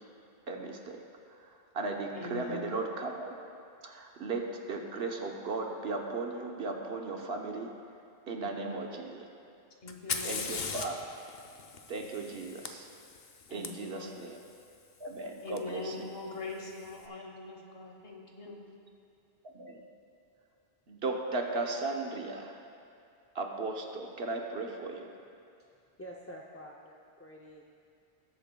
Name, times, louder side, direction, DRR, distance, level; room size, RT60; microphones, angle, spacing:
voice 1, 0.5-1.0 1.7-3.3 3.8-7.7 8.3-9.3 10.2-10.9 11.9-12.9 13.5-14.4 15.0-16.0 19.5-19.8 20.9-22.6 23.3-25.1, right 3 dB, 75° right, 2 dB, 1.2 m, -36 dB
voice 2, 2.1-2.7 8.4-9.0 9.8-10.5 13.5-14.2 15.4-18.6, left 3 dB, 70° left, 0 dB, 1.5 m, -42 dB
Fire, 9.9-13.7 15.6-15.7 16.5-16.9, left 5 dB, 50° left, 0.7 m, -39 dB
voice 3, 26.0-27.6, equal, 20° left, -3 dB, 0.4 m, -48 dB
19.5 x 8.2 x 2.3 m, 2.6 s
omnidirectional pair, 1.0 m